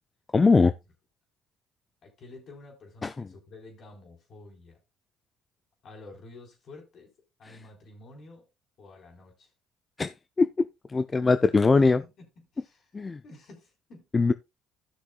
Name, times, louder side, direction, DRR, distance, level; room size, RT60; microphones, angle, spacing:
voice 1, 0.3-0.7 3.0-3.3 10.0-10.5 10.9-12.0 12.9-13.2 14.1-14.3, left 4 dB, 30° left, 0.5 m, -21 dB
voice 2, 2.0-4.8 5.8-7.1 7.4-8.5 8.8-9.5 11.8-14.1, left 2 dB, 55° left, 3.9 m, -50 dB
16.0 x 6.2 x 2.2 m
supercardioid pair, 70°, 0 cm